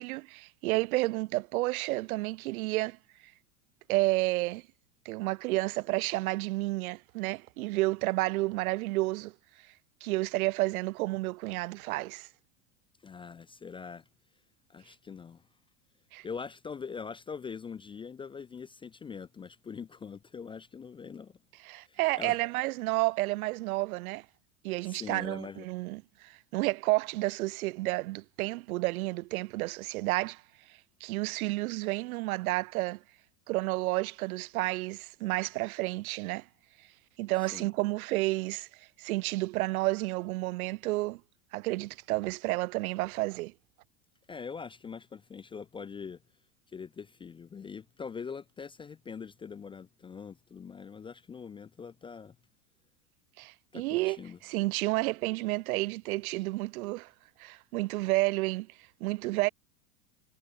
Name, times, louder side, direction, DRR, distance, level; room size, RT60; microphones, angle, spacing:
voice 1, 0.0-3.0 3.9-4.6 5.0-9.3 10.0-12.3 16.1-16.2 21.6-24.2 24.6-30.4 31.0-33.0 33.5-36.5 37.2-38.7 39.0-41.2 41.5-43.5 53.4-54.2 54.4-57.1 57.4-58.7 59.0-59.5, right 20 dB, 75° right, 0.9 m, -31 dB
voice 2, 13.0-14.0 14.7-15.4 16.2-21.4 21.8-22.4 24.8-25.7 37.5-37.7 44.3-46.2 46.7-52.4 53.7-54.4, left 6 dB, 15° left, 0.4 m, -43 dB
supercardioid pair, 125°, 43 cm